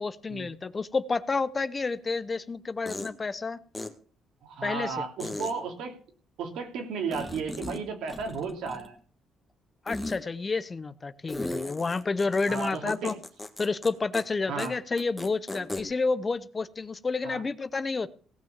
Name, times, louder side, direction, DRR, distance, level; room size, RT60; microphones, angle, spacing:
voice 1, 0.0-3.6 4.6-5.1 9.9-13.1 13.6-18.1, left 4 dB, 25° left, 15 dB, 0.7 m, -30 dB
sound 1, 2.0-2.1 2.9-3.1 3.7-3.9 5.2-5.5 7.1-7.8 8.1-9.0 9.9-10.2 11.3-13.9 14.1-14.2 14.6-14.7 15.0-15.8, left 2 dB, 10° left, 1.7 m, -36 dB
voice 2, 4.4-6.0 6.4-9.0 12.5-13.1 14.5-14.8 17.2-17.4, right 5 dB, 85° right, 4 dB, 3.1 m, -34 dB
17.5 x 6.2 x 7.3 m, 0.43 s
cardioid pair, 130°, 0 cm